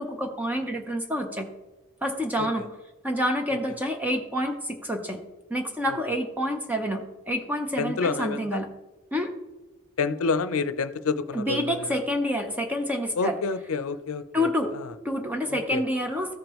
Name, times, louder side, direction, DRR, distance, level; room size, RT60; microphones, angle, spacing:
voice 1, 0.0-1.5 2.0-2.7 3.0-5.2 5.5-8.7 9.1-9.3 11.3-13.4 14.3-14.7 15.0-16.4, equal, 10° right, 4 dB, 0.7 m, -28 dB
voice 2, 7.8-8.6 10.0-12.0 13.2-14.5 14.7-14.9 15.5-15.8, left 4 dB, 75° left, 12 dB, 0.6 m, -28 dB
14.0 x 5.1 x 3.0 m, 1.1 s
head